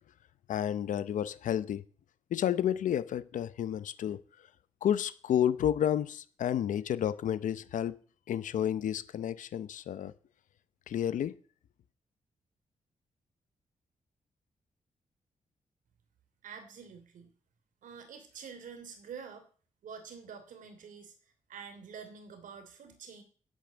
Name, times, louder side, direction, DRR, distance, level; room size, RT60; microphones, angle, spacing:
voice 1, 0.5-1.8 2.3-4.2 4.8-8.0 8.3-10.1 10.9-11.4, left 10 dB, 80° left, 0.8 m, -31 dB
voice 2, 16.4-17.3 17.8-19.5 19.8-21.1 21.5-23.2, right 6 dB, 85° right, 3.0 m, -47 dB
12.0 x 8.8 x 9.0 m
wide cardioid pair, 175°, 13 cm